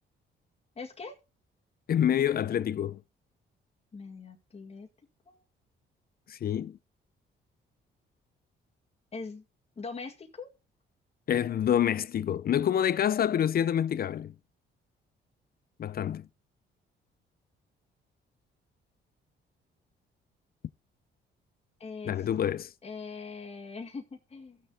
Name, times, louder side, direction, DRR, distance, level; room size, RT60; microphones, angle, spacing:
voice 1, 0.8-1.2 3.9-4.9 5.3-5.4 9.1-9.4 9.8-10.5 21.8-22.3 22.8-24.6, left 4 dB, 30° left, 2.0 m, -41 dB
voice 2, 1.9-3.0 6.3-6.8 11.3-14.3 15.8-16.3 22.0-22.7, left 9 dB, 50° left, 0.5 m, -27 dB
15.5 x 6.6 x 3.8 m
cardioid pair, 90°, 20 cm